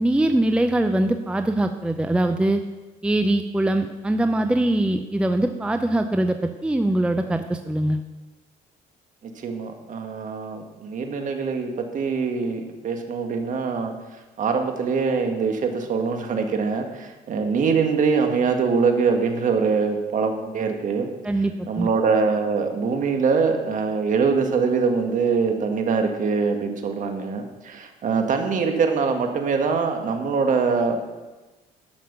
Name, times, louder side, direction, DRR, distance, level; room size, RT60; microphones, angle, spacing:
voice 1, 0.0-2.6 3.0-8.0 21.2-21.9, right 1 dB, 5° right, 7 dB, 0.5 m, -22 dB
voice 2, 9.4-13.9 14.4-21.1 21.7-31.1, right 5 dB, 50° right, 5 dB, 1.7 m, -23 dB
12.0 x 6.1 x 6.7 m, 1.2 s
cardioid pair, 110°, 17 cm